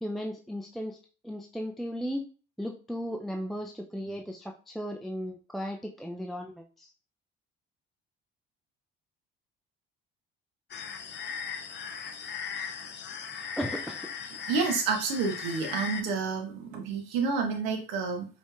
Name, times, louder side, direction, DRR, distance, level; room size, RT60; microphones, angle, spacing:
voice 1, 0.0-1.0 1.2-2.2 2.6-6.9 13.6-14.1, equal, ahead, 2 dB, 0.4 m, -36 dB
sound 1, 10.7-16.0, left 6 dB, 40° left, 0.6 m, -38 dB
voice 2, 14.5-18.3, right 5 dB, 70° right, 3 dB, 1.1 m, -29 dB
5.1 x 3.3 x 2.4 m, 0.37 s
hypercardioid pair, 55°, 30 cm